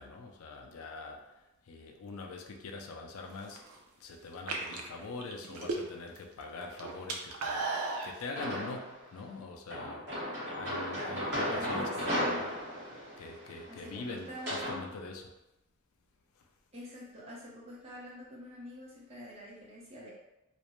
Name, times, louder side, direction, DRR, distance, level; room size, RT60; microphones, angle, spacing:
voice 1, 0.0-3.7 4.0-7.7 8.0-10.1 10.3-12.4 13.2-15.3 16.4-16.5, left 3 dB, 70° left, 2 dB, 0.4 m, -44 dB
sound 1, 3.3-3.8 4.3-6.2 6.5-8.1, right 3 dB, 80° right, 0.4 m, -35 dB
sound 2, 8.4-9.0 9.7-14.8, equal, 50° right, 1.2 m, -35 dB
voice 2, 11.5-12.4 13.7-15.0 16.7-20.1, left 1 dB, 30° right, -5 dB, 0.6 m, -46 dB
2.5 x 2.1 x 2.9 m, 0.94 s
head